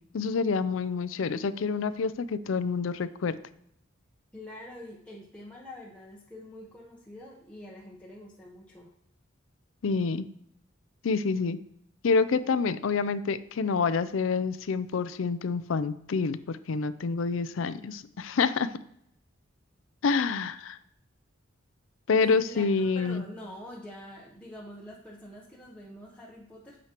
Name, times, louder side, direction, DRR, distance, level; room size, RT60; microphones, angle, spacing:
voice 1, 0.1-3.4 9.8-10.2 11.0-11.6 12.0-18.7 20.0-20.8 22.1-23.2, left 4 dB, 70° left, 14 dB, 0.4 m, -27 dB
voice 2, 4.3-8.9 22.2-26.8, left 1 dB, 5° left, -5 dB, 0.8 m, -45 dB
8.9 x 6.2 x 2.9 m, 0.73 s
head